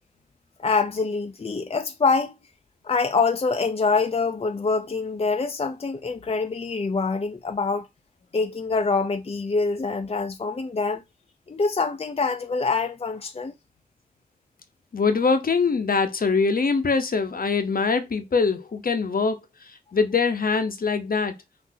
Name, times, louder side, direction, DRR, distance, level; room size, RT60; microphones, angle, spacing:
voice 1, 0.6-2.3 2.8-7.9 8.3-11.0 11.5-13.5, left 4 dB, 40° left, 0.5 m, -25 dB
voice 2, 14.9-21.4, left 4 dB, 70° left, 0.8 m, -23 dB
6.0 x 2.7 x 2.7 m
wide cardioid pair, 70°, 16 cm